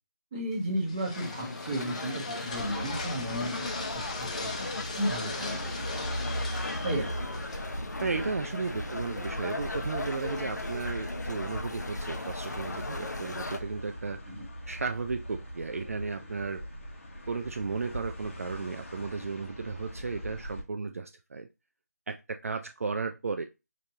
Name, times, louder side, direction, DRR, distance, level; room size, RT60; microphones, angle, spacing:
voice 1, 0.3-3.9 4.2-6.1 6.7-7.3 8.9-9.0 14.3-14.4, right 1 dB, 20° right, -3 dB, 1.1 m, -34 dB
sound 1, 0.5-8.0, left 3 dB, 25° left, 0.5 m, -41 dB
sound 2, 1.1-13.6, left 2 dB, 90° left, 0.8 m, -38 dB
sound 3, 2.5-20.6, equal, 50° left, 1.2 m, -40 dB
voice 2, 8.0-14.2 14.7-16.6 17.3-21.5 22.1-23.5, right 4 dB, 55° right, 6 dB, 0.3 m, -34 dB
5.1 x 2.8 x 2.8 m, 0.27 s
figure-of-eight pair, 170°, 9 cm